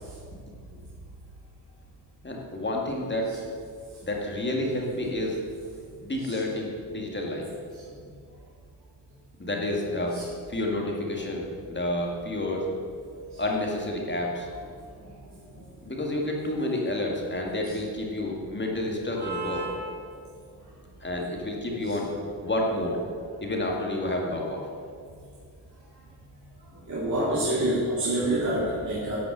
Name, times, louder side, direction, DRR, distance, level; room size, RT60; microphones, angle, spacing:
voice 1, 2.2-3.3 4.0-5.4 6.0-7.5 9.4-10.2 10.5-12.7 13.4-14.5 15.8-19.7 21.0-22.1 22.4-23.0 23.4-24.7, left 1 dB, 25° left, -1 dB, 2.1 m, -29 dB
voice 2, 19.2-19.8 26.9-29.2, right 1 dB, 40° right, -8 dB, 2.8 m, -27 dB
11.5 x 5.9 x 7.4 m, 2.2 s
cardioid pair, 80°, 43 cm